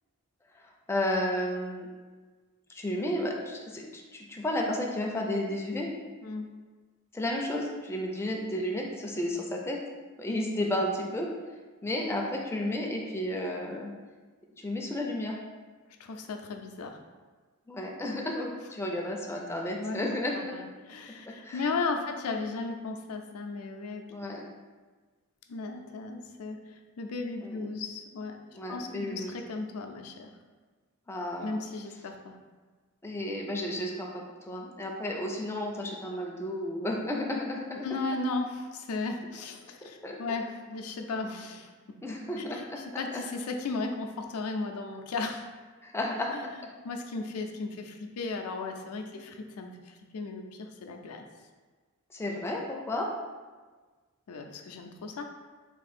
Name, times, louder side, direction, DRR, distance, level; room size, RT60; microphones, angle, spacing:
voice 1, 0.6-1.9 2.7-5.9 7.1-9.8 10.2-11.3 11.8-13.9 14.6-15.4 17.7-20.6 21.3-21.7 24.1-24.4 27.4-27.7 28.5-29.3 31.1-31.6 33.0-37.8 40.0-40.2 42.0-43.2 45.8-46.3 49.1-49.2 52.1-53.1, left 1 dB, 10° left, -1 dB, 0.4 m, -32 dB
voice 2, 16.0-17.0 19.8-20.0 20.3-24.0 25.5-28.4 28.7-30.3 31.4-32.4 37.8-41.7 42.5-45.4 46.3-46.5 46.8-51.2 54.3-55.3, left 3 dB, 85° left, 4 dB, 0.4 m, -35 dB
3.6 x 2.5 x 4.1 m, 1.4 s
head